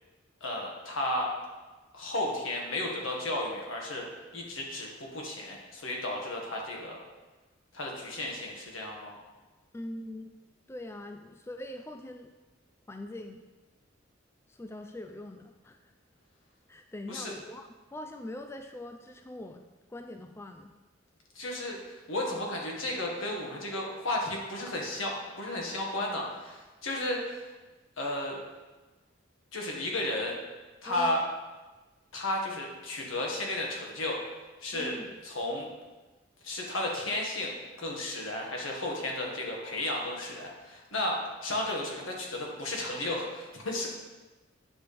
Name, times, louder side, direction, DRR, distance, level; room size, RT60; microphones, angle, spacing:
voice 1, 0.4-1.3 1.9-4.1 4.3-7.0 7.7-9.2 17.1-17.3 21.3-27.4 28.0-28.4 29.5-30.4 30.8-31.2 32.1-34.2 34.6-35.0 35.2-35.7 36.4-43.9, left 1 dB, 85° left, -1 dB, 1.7 m, -33 dB
voice 2, 9.7-10.3 10.7-12.3 12.9-13.4 14.5-15.8 16.7-20.7 23.7-23.8 25.6-25.7 30.9-31.2 34.7-35.2, left 1 dB, 15° left, 5 dB, 0.3 m, -42 dB
9.4 x 6.1 x 3.4 m, 1.2 s
head